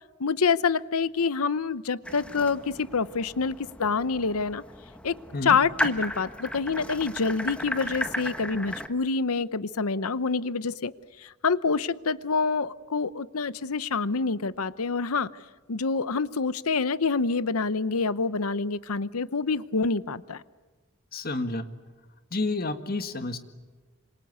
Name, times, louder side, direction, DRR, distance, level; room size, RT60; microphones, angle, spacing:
voice 1, 0.2-4.6 5.0-5.2 5.4-10.9 11.2-15.3 15.7-20.4, left 4 dB, 85° left, 17 dB, 0.8 m, -27 dB
sound 1, 2.0-8.9, left 1 dB, 5° left, 1.5 m, -35 dB
voice 2, 21.1-21.6 22.3-23.4, left 2 dB, 45° left, 9 dB, 1.8 m, -30 dB
27.5 x 26.5 x 8.3 m, 1.3 s
head